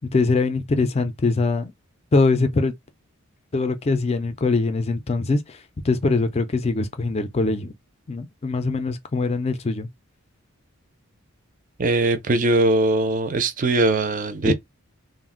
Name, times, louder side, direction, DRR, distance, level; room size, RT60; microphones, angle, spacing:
voice 1, 0.1-1.7 2.1-2.7 3.5-7.7 8.1-9.9 14.4-14.5, left 3 dB, 30° left, 0.4 m, -22 dB
voice 2, 11.8-14.5, right 2 dB, 40° right, 0.4 m, -20 dB
2.4 x 2.1 x 3.6 m
head